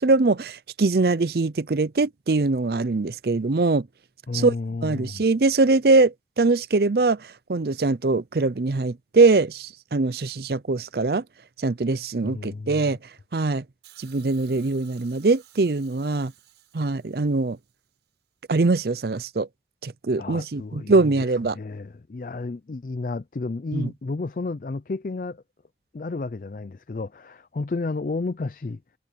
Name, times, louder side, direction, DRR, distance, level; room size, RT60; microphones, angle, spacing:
voice 1, 0.0-3.9 4.3-4.5 4.8-11.2 11.6-13.0 13.3-13.6 14.0-16.3 16.7-17.6 18.5-19.5 19.8-21.6 23.7-23.9, right 3 dB, 60° right, 0.6 m, -22 dB
voice 2, 4.3-5.2 12.2-12.9 20.2-21.2 21.5-25.4 25.9-28.8, left 3 dB, 45° left, 0.4 m, -32 dB
Hiss, 13.8-18.0 19.0-19.1, right 12 dB, 80° right, 6.9 m, -55 dB
head